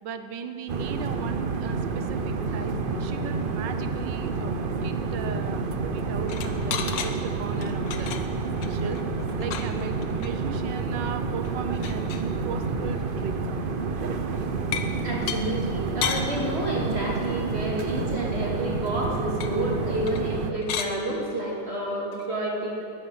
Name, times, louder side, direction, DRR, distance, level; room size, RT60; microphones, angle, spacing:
voice 1, 0.0-8.2 8.7-9.0 9.4-13.3, right 6 dB, 80° right, 9 dB, 1.5 m, -37 dB
sound 1, 0.7-20.5, right 4 dB, 50° right, 0.6 m, -29 dB
sound 2, 6.2-7.1 7.5-10.3 10.7-10.8 11.1-11.2 11.4-12.3 12.9-13.1 14.7-14.9 15.3-15.4 16.0-16.3 19.4-19.5 20.1-20.3 20.5-20.9 22.1-22.3, left 7 dB, 90° left, 1.6 m, -33 dB
voice 2, 15.0-22.7, right 1 dB, 35° right, -3 dB, 3.0 m, -29 dB
19.5 x 10.5 x 5.7 m, 2.5 s
omnidirectional pair, 1.9 m